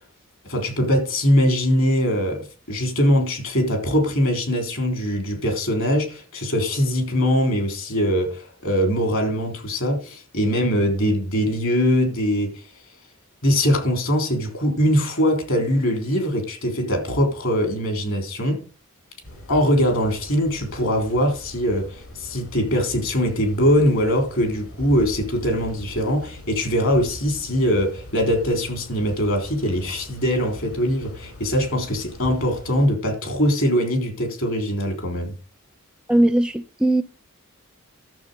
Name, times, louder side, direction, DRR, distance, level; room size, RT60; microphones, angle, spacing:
voice 1, 0.4-12.6 13.4-18.6 19.5-35.3, equal, 65° left, 3.5 m, -22 dB
sound 1, 19.2-32.9, equal, 80° left, 6.7 m, -40 dB
voice 2, 36.1-37.0, right 1 dB, 5° right, 0.4 m, -19 dB
12.0 x 7.1 x 5.3 m
head